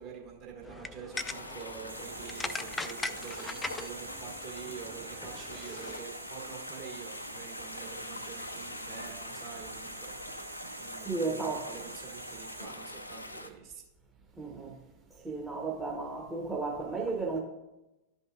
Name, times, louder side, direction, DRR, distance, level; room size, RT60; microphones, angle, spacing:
voice 1, 0.0-13.8, right 8 dB, 45° right, 1.7 m, -47 dB
sound 1, 0.6-6.0, left 3 dB, 10° left, 0.3 m, -41 dB
sound 2, 1.1-13.5, left 1 dB, 85° left, 0.5 m, -43 dB
sound 3, 1.9-12.7, right 6 dB, 65° right, 1.5 m, -49 dB
voice 2, 11.1-11.7 14.4-14.7 15.2-17.4, right 3 dB, 10° right, 0.9 m, -33 dB
12.0 x 5.4 x 2.4 m
figure-of-eight pair, 90°, 0 cm